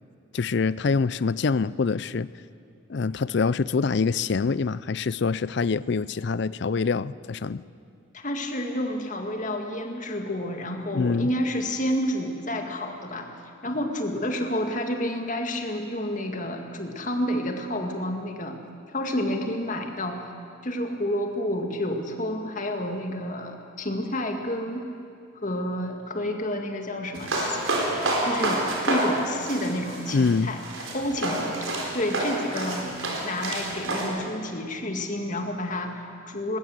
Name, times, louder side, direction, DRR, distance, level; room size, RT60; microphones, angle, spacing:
voice 1, 0.3-2.3 2.9-7.6 10.9-11.3 30.1-30.5, left 4 dB, 55° left, 18 dB, 0.4 m, -25 dB
voice 2, 8.1-13.3 13.6-18.6 18.9-20.2 20.6-24.9 25.3-27.6 28.2-30.6 30.9-31.5 31.9-33.0 33.2-36.6, left 1 dB, 40° left, 4 dB, 2.0 m, -29 dB
sound 1, 27.1-34.1, right 2 dB, 80° right, 4.2 m, -29 dB
20.5 x 18.5 x 7.9 m, 2.5 s
head